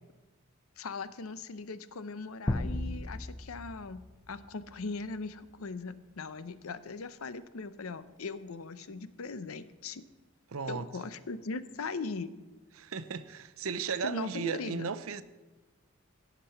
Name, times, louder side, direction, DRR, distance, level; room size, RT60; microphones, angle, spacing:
voice 1, 0.8-10.0 10.7-12.3 14.0-14.9, left 4 dB, 85° left, 0.7 m, -39 dB
sound 1, 2.5-5.1, left 1 dB, 15° left, 0.4 m, -36 dB
voice 2, 10.5-10.9 12.8-15.2, right 5 dB, 85° right, 0.6 m, -35 dB
17.0 x 6.1 x 5.7 m
head